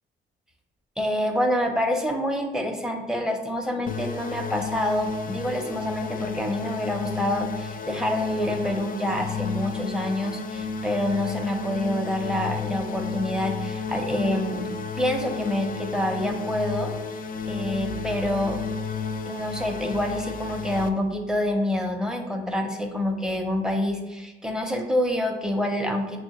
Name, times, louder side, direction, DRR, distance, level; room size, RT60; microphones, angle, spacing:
voice 1, 1.0-14.7 15.0-16.9 17.4-18.6 19.3-26.2, left 1 dB, 5° right, 3 dB, 0.6 m, -27 dB
sound 1, 3.9-20.9, left 5 dB, 45° left, 0.4 m, -32 dB
6.0 x 2.0 x 3.0 m, 1.2 s
cardioid pair, 90°, 20 cm